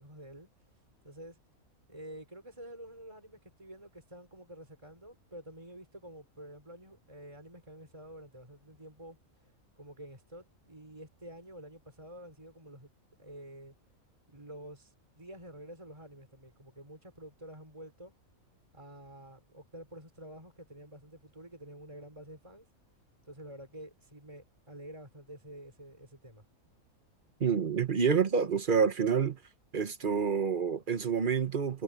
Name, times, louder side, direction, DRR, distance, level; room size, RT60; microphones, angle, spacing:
voice 1, 0.0-1.4 1.9-12.9 13.2-13.7 14.3-18.1 18.7-22.7 23.2-26.4, equal, 20° right, 4.6 m, -49 dB
voice 2, 27.4-29.4 29.7-31.8, right 6 dB, 40° right, 1.0 m, -28 dB
omnidirectional pair, 1.5 m